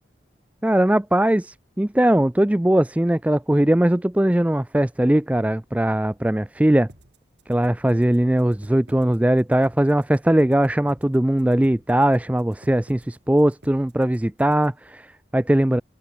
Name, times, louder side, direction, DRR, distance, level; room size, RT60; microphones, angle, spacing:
voice 1, 0.6-6.9 7.5-15.8, right 1 dB, 10° right, 0.3 m, -20 dB
sound 1, 6.9-14.9, right 1 dB, 75° right, 4.7 m, -51 dB
head